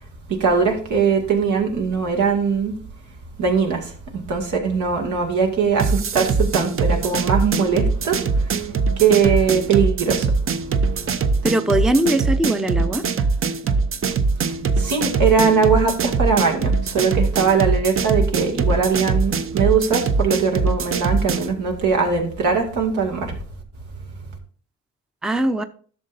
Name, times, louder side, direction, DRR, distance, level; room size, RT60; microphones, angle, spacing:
voice 1, 0.3-2.7 3.4-3.9 4.3-8.7 9.0-10.3 14.8-23.4, right 5 dB, 80° right, 2 dB, 2.1 m, -20 dB
sound 1, 5.8-21.5, right 4 dB, 45° right, 0.7 m, -22 dB
voice 2, 11.4-13.0 25.2-25.6, right 1 dB, ahead, 9 dB, 0.5 m, -20 dB
11.5 x 6.6 x 2.6 m, 0.43 s
cardioid pair, 90°, 30 cm